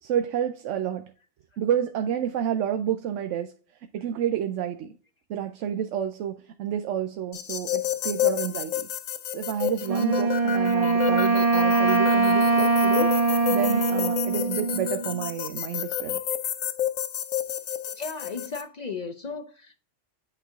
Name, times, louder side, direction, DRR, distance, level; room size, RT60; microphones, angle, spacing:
voice 1, 0.0-1.1 1.6-3.5 3.9-5.0 5.3-8.9 9.3-13.1 13.5-16.2, right 9 dB, 70° right, 0.9 m, -29 dB
sound 1, 7.3-18.6, left 11 dB, 80° left, 1.1 m, -31 dB
Wind instrument woodwind instrument, 9.9-15.3, right 3 dB, 45° right, 0.5 m, -22 dB
voice 2, 17.9-19.7, left 5 dB, 50° left, 0.5 m, -35 dB
8.6 x 3.3 x 3.6 m
omnidirectional pair, 1.4 m